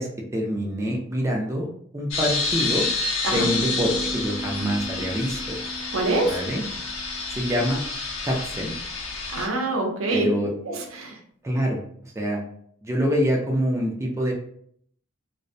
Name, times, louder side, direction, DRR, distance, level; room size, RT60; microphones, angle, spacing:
voice 1, 0.0-1.7 1.9-2.9 3.3-5.4 6.2-6.6 7.3-7.8 8.2-8.8 10.1-10.5 11.4-11.8 12.2-12.4 12.8-14.3, equal, 15° right, -1 dB, 0.4 m, -25 dB
sound 1, 2.1-9.5, left 3 dB, 70° left, 0.5 m, -29 dB
sound 2, 3.3-7.6, right 2 dB, 25° left, 0.6 m, -36 dB
voice 2, 5.9-6.4 9.3-10.3 10.6-11.2, right 2 dB, 85° right, 2 dB, 0.6 m, -25 dB
2.5 x 2.0 x 2.5 m, 0.64 s
head